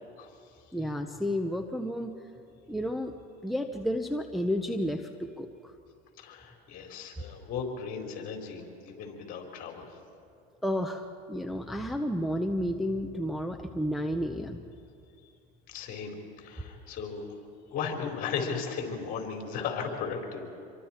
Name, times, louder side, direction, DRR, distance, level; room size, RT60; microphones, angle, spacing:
voice 1, 0.7-2.1 2.7-3.1 3.4-5.7 10.6-14.6, equal, ahead, 3 dB, 0.9 m, -31 dB
voice 2, 6.2-10.0 15.7-17.2 17.7-20.5, left 6 dB, 45° left, 1 dB, 4.3 m, -36 dB
27.0 x 23.0 x 4.5 m, 2.5 s
supercardioid pair, 125°, 19 cm